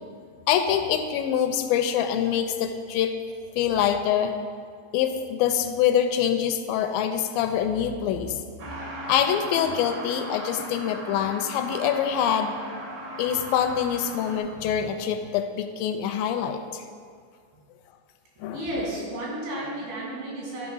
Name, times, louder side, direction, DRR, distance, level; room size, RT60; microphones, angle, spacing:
voice 1, 0.5-3.1 3.6-4.3 4.9-8.5 9.0-12.9 13.2-16.8 18.4-18.6, left 9 dB, 85° left, 7 dB, 2.3 m, -25 dB
Truck, 8.6-14.4, right 1 dB, 70° right, 1.0 m, -37 dB
voice 2, 18.5-20.7, right 1 dB, 90° right, -5 dB, 4.3 m, -32 dB
11.0 x 4.9 x 5.4 m, 2.2 s
omnidirectional pair, 4.2 m